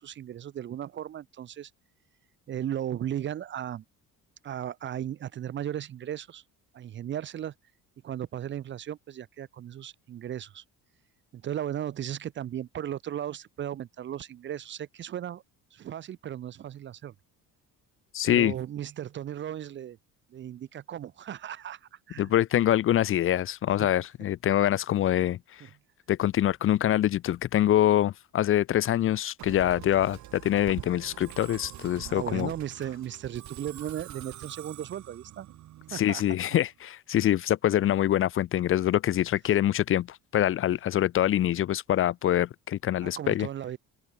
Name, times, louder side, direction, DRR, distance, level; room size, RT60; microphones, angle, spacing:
voice 1, 0.0-1.7 2.5-3.8 4.4-6.4 6.7-7.5 8.0-10.6 11.3-15.4 15.7-17.1 18.3-20.0 20.3-22.3 23.8-23.9 32.1-35.5 35.9-36.2 43.0-43.8, right 10 dB, 35° right, 0.6 m, -36 dB
voice 2, 18.1-18.5 22.2-25.6 26.1-32.5 35.9-43.5, left 12 dB, 40° left, 0.5 m, -25 dB
Musical instrument, 29.4-36.7, right 14 dB, 60° right, 1.9 m, -45 dB
open air
cardioid pair, 160°, 33 cm